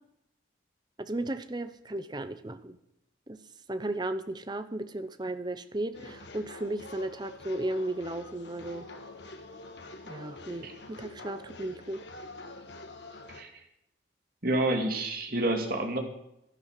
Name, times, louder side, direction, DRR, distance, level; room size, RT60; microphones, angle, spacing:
voice 1, 1.0-2.8 3.3-3.4 3.7-8.9 10.1-12.1, right 1 dB, 20° right, 11 dB, 0.8 m, -35 dB
sound 1, 5.9-13.4, left 2 dB, 65° left, 1.8 m, -46 dB
voice 2, 14.4-16.0, right 1 dB, 50° right, 4 dB, 2.6 m, -28 dB
12.0 x 11.0 x 6.6 m, 0.83 s
head